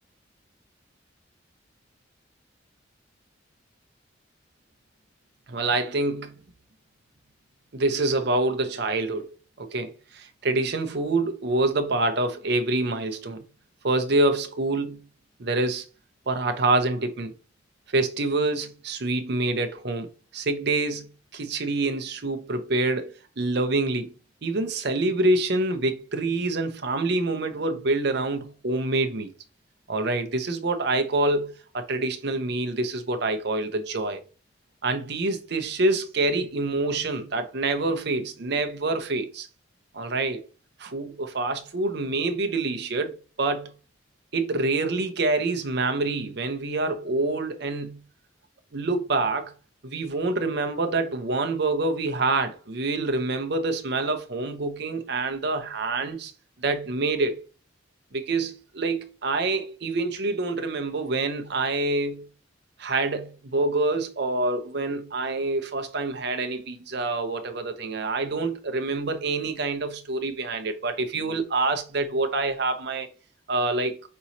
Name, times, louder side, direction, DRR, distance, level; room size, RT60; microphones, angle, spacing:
voice 1, 5.5-6.3 7.7-9.3 9.6-13.4 13.8-15.0 15.4-15.8 16.3-17.3 17.9-20.1 20.3-24.1 24.4-29.3 29.9-34.2 34.8-39.5 39.9-40.4 40.8-43.7 44.3-48.0 48.7-49.5 49.8-56.3 56.6-57.4 58.1-62.3 62.8-73.1 73.5-74.0, right 2 dB, 55° right, 0.7 m, -26 dB
5.4 x 2.9 x 2.7 m
head